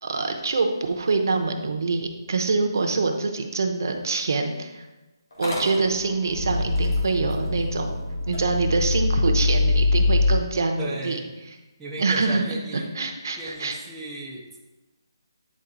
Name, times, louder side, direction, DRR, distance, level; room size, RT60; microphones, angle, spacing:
voice 1, 0.0-4.9 5.4-8.0 8.3-11.2 12.0-12.4 12.7-13.8, right 3 dB, 45° right, 5 dB, 0.7 m, -25 dB
Motor vehicle (road) / Engine starting, 5.3-10.3, left 3 dB, 55° left, 2.0 m, -24 dB
voice 2, 10.8-11.3 11.8-12.9 13.4-14.6, right 2 dB, 5° right, -7 dB, 0.4 m, -35 dB
9.4 x 3.8 x 3.8 m, 1.1 s
hypercardioid pair, 175°, 2 cm